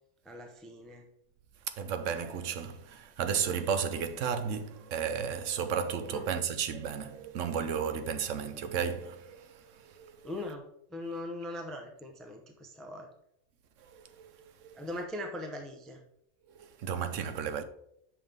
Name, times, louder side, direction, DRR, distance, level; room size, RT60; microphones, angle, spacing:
voice 1, 0.2-1.0 6.1-6.3 10.2-10.6 10.9-13.1 14.8-16.0, left 1 dB, ahead, 0.6 m, -40 dB
voice 2, 1.8-10.2 13.9-14.8 16.6-17.6, right 7 dB, 85° right, 1.0 m, -34 dB
7.3 x 5.5 x 3.5 m
omnidirectional pair, 1.3 m